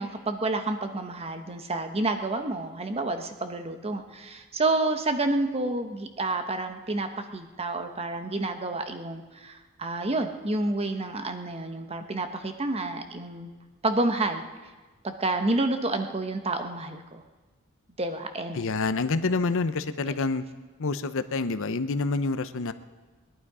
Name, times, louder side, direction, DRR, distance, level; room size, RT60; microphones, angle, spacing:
voice 1, 0.0-13.5 13.8-14.4 15.0-17.2 18.0-18.6, right 2 dB, 30° right, 7 dB, 1.1 m, -29 dB
voice 2, 18.5-20.4 20.8-22.7, left 3 dB, 65° left, 12 dB, 0.7 m, -27 dB
21.0 x 11.0 x 4.9 m, 1.3 s
head